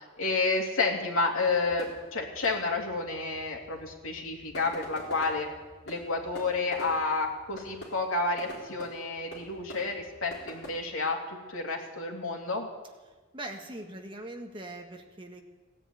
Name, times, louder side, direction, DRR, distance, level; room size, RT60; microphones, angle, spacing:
voice 1, 0.0-5.5 5.9-11.2 11.5-12.7, left 3 dB, 80° left, 1 dB, 2.7 m, -30 dB
sound 1, 1.5-10.7, left 1 dB, 50° left, 3.9 m, -47 dB
voice 2, 13.3-15.4, right 1 dB, 25° right, 3 dB, 1.5 m, -41 dB
17.5 x 10.0 x 8.3 m, 1.3 s
head